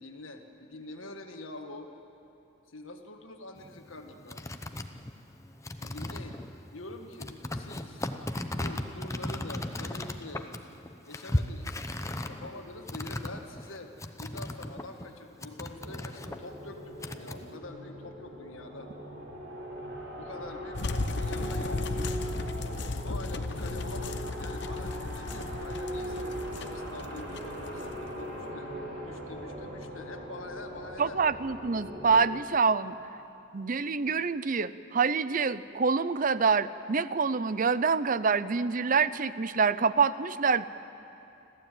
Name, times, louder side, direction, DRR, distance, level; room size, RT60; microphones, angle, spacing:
voice 1, 0.0-1.9 2.7-4.4 5.8-6.4 6.7-8.1 8.5-10.5 11.1-11.9 12.3-13.9 14.2-18.9 20.2-21.8 23.0-28.7 29.0-31.2, left 2 dB, 75° left, 4 dB, 1.7 m, -45 dB
sound 1, 3.6-15.1 15.4-17.5, left 1 dB, 15° left, 0.8 m, -37 dB
sound 2, 15.8-32.3, equal, 65° right, 4.6 m, -40 dB
sound 3, 20.7-28.4, left 2 dB, 55° left, 0.9 m, -35 dB
voice 2, 31.0-32.9 33.5-40.6, right 5 dB, 40° right, 15 dB, 0.6 m, -26 dB
26.5 x 15.0 x 9.1 m, 2.8 s
head